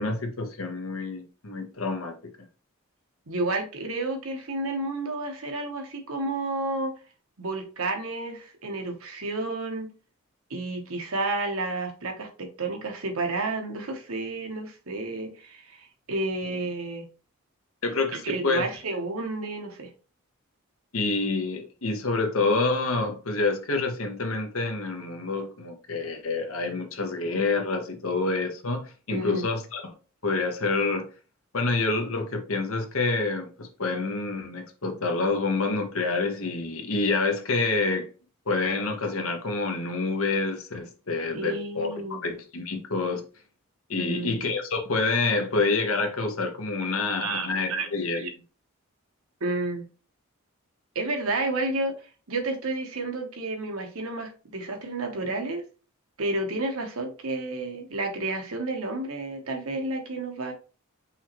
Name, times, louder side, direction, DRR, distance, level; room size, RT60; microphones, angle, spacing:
voice 1, 0.0-2.1 16.5-16.6 17.8-18.7 20.9-29.9 30.2-31.0 31.5-38.1 38.5-41.9 42.2-43.2 43.9-48.2, left 3 dB, 75° left, 1.0 m, -27 dB
voice 2, 3.3-6.9 7.4-9.9 10.5-17.0 18.1-19.9 29.1-29.5 41.3-42.2 44.0-44.3 47.2-48.3 49.4-49.8 50.9-55.6 56.2-60.5, right 2 dB, 80° right, 1.1 m, -31 dB
5.5 x 3.0 x 2.9 m
head